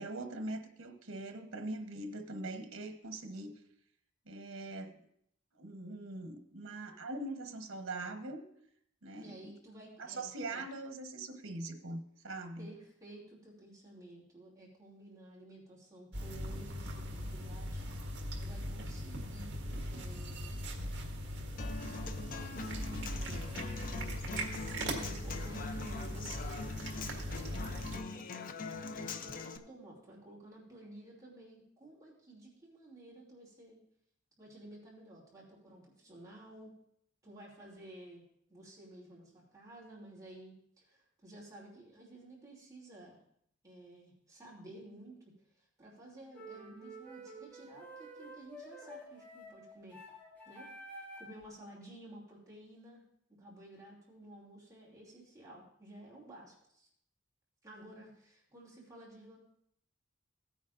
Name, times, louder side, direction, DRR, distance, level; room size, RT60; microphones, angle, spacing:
voice 1, 0.0-3.5 4.3-4.9 5.6-8.5 9.0-9.5 10.0-12.7, right 2 dB, 85° right, 6 dB, 1.1 m, -42 dB
voice 2, 9.2-10.6 12.6-19.6 19.9-20.6 21.8-23.9 24.2-28.3 28.6-33.8 34.4-36.7 37.2-38.2 38.5-43.2 43.6-45.2 45.5-50.0 50.4-53.0 53.4-56.9 57.6-59.4, right 1 dB, 15° right, -5 dB, 2.7 m, -53 dB
sound 1, 16.1-28.0, equal, 60° right, 1.7 m, -40 dB
Human voice / Acoustic guitar, 21.6-29.6, left 4 dB, 40° left, 0.5 m, -43 dB
sound 2, 46.3-51.4, right 1 dB, 10° left, 2.0 m, -50 dB
16.5 x 9.3 x 2.5 m, 0.71 s
head